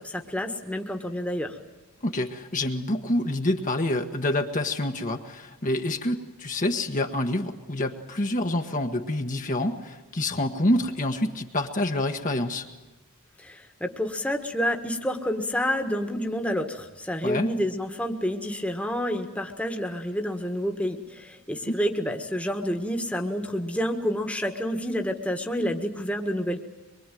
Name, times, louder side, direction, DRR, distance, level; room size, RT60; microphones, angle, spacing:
voice 1, 0.0-1.6 13.4-26.6, equal, 5° left, 4 dB, 1.7 m, -29 dB
voice 2, 2.0-12.7 17.2-17.5 21.7-21.8, left 1 dB, 35° left, 4 dB, 1.5 m, -27 dB
24.0 x 23.5 x 9.2 m, 1.1 s
head